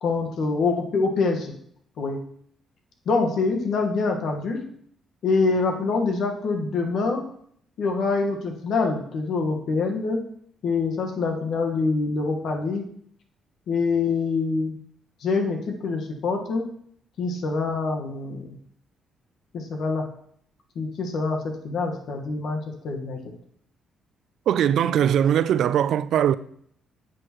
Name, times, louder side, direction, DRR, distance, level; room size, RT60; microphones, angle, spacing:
voice 1, 0.0-1.5 2.0-2.2 3.0-4.6 5.2-7.3 7.8-10.2 10.6-12.8 13.7-14.7 15.2-16.7 17.2-18.6 19.5-20.0 20.7-22.6 22.8-23.2, left 4 dB, 70° left, 1.4 m, -25 dB
voice 2, 24.5-26.3, right 9 dB, 75° right, 0.3 m, -20 dB
9.9 x 6.4 x 3.0 m
cardioid pair, 90°, 0 cm